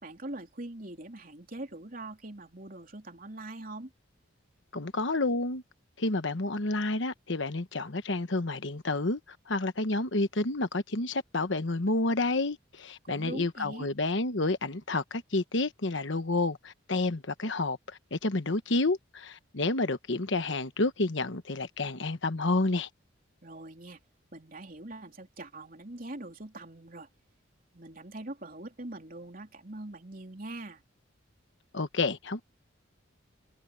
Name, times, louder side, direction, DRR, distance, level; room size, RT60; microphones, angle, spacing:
voice 1, 0.0-3.9 13.0-13.9 23.4-24.0 24.3-27.1 27.7-30.8, right 2 dB, 45° right, 3.7 m, -42 dB
voice 2, 4.7-5.6 6.0-17.8 18.1-22.9 31.7-32.4, left 2 dB, 65° left, 1.2 m, -30 dB
head